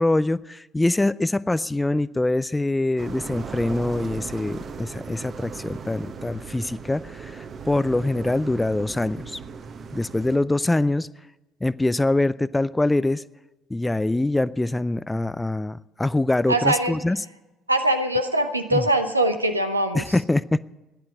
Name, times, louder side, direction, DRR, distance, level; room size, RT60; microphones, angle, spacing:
voice 1, 0.0-9.4 9.9-11.1 11.6-13.2 13.7-17.2 18.7-18.8 19.9-20.7, left 2 dB, 10° left, 18 dB, 0.5 m, -24 dB
sound 1, 3.0-10.4, right 5 dB, 40° right, 1.2 m, -37 dB
voice 2, 16.5-16.9 17.7-20.0, right 1 dB, 85° right, 7 dB, 0.9 m, -22 dB
13.5 x 10.5 x 9.3 m, 1.0 s
figure-of-eight pair, 55°, 0 cm